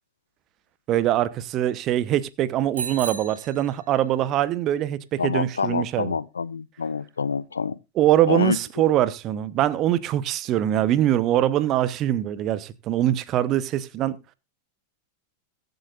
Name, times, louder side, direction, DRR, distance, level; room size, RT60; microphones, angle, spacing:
voice 1, 0.9-6.2 8.0-14.2, right 12 dB, 35° right, 0.9 m, -23 dB
Bicycle bell, 2.7-4.3, right 6 dB, 70° right, 1.6 m, -35 dB
voice 2, 5.2-7.8 8.3-8.6, left 5 dB, 75° left, 0.5 m, -26 dB
22.0 x 8.0 x 2.5 m
figure-of-eight pair, 90°, 0 cm